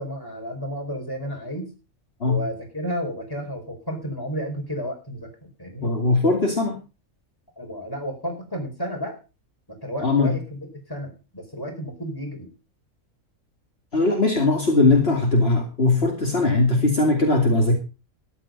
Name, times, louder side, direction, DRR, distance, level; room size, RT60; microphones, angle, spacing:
voice 1, 0.0-1.7 2.2-5.9 7.6-9.2 9.7-10.6 10.9-12.5, equal, 15° left, 1 dB, 4.7 m, -32 dB
voice 2, 5.8-6.8 10.0-10.3 13.9-17.8, left 2 dB, 45° left, 1 dB, 2.7 m, -20 dB
14.0 x 11.0 x 5.3 m, 0.31 s
omnidirectional pair, 1.4 m